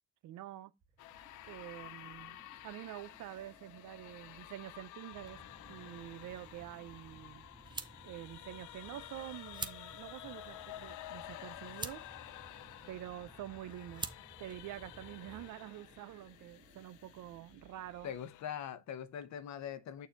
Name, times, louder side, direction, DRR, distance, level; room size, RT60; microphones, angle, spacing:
voice 1, 0.2-0.7 1.5-2.4 2.6-5.4 5.7-7.5 8.1-12.0 12.9-14.1 14.4-18.1, right 13 dB, 75° right, 0.6 m, -47 dB
sound 1, 0.8-18.4, right 3 dB, 35° right, 1.8 m, -64 dB
sound 2, 1.0-18.4, left 14 dB, 80° left, 0.5 m, -52 dB
sound 3, 5.1-15.5, right 3 dB, 15° right, 0.6 m, -50 dB
voice 2, 18.0-20.1, left 9 dB, 65° left, 0.8 m, -42 dB
6.7 x 2.7 x 5.7 m
cardioid pair, 90°, 30 cm